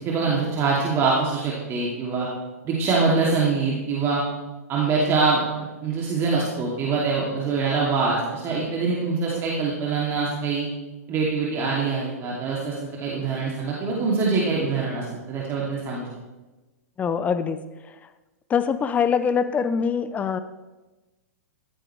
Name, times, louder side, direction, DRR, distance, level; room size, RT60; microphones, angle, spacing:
voice 1, 0.0-2.3 2.6-4.2 4.7-10.7 11.1-16.1, right 4 dB, 30° right, -4 dB, 2.7 m, -24 dB
voice 2, 17.0-17.6 18.5-20.4, left 6 dB, 15° left, 12 dB, 0.6 m, -23 dB
14.5 x 13.5 x 3.3 m, 1.1 s
figure-of-eight pair, 105°, 9 cm